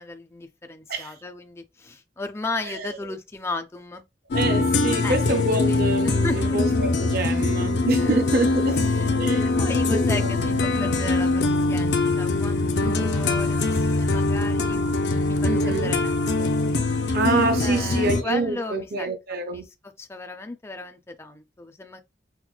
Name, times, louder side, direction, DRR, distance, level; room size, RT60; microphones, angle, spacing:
voice 1, 0.0-4.0 5.0-5.2 5.5-6.8 7.3-7.7 8.0-8.3 8.6-9.2 9.6-14.8 15.3-16.5 17.6-22.0, left 2 dB, 15° left, 0.4 m, -35 dB
sound 1, 4.3-18.2, left 3 dB, 75° left, 0.5 m, -23 dB
voice 2, 4.3-8.8 9.2-9.5 9.9-10.3 12.8-13.1 15.4-15.9 17.1-19.7, right 3 dB, 55° right, 0.5 m, -26 dB
5.8 x 2.1 x 2.3 m
head